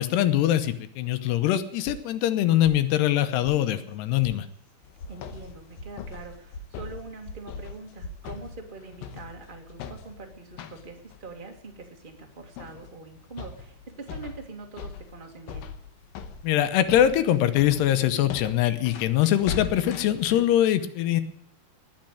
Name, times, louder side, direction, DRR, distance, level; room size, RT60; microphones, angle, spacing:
voice 1, 0.0-4.5 16.4-21.2, left 12 dB, 90° left, 10 dB, 3.1 m, -23 dB
sound 1, 1.8-2.4 2.6-3.2 3.4-3.5 3.9-4.3 4.6-5.1 5.4-5.9 6.2-6.7 6.9-7.4 7.7-8.2, left 1 dB, 55° left, 3.8 m, -41 dB
sound 2, 4.8-20.4, left 7 dB, 70° left, 2.7 m, -41 dB
voice 2, 5.1-15.7, right 3 dB, 30° right, 2 dB, 0.8 m, -43 dB
19.5 x 6.7 x 9.0 m, 0.74 s
omnidirectional pair, 4.6 m